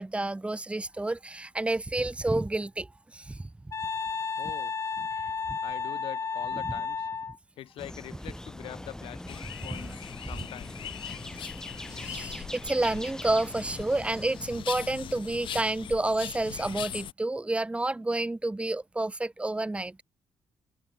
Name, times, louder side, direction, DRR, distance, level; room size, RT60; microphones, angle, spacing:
voice 1, 0.0-3.5 5.5-5.6 9.7-10.0 10.4-10.5 11.9-20.0, right 2 dB, 15° right, 7.7 m, -30 dB
Wind instrument woodwind instrument, 3.7-7.4, left 5 dB, 35° left, 4.9 m, -32 dB
voice 2, 4.4-4.7 5.6-7.1 7.6-10.9, left 13 dB, 85° left, 7.6 m, -43 dB
sound 1, 7.8-14.7, left 1 dB, 5° left, 5.7 m, -42 dB
sound 2, 9.3-17.1, left 10 dB, 70° left, 5.8 m, -41 dB
cardioid pair, 120°, 9 cm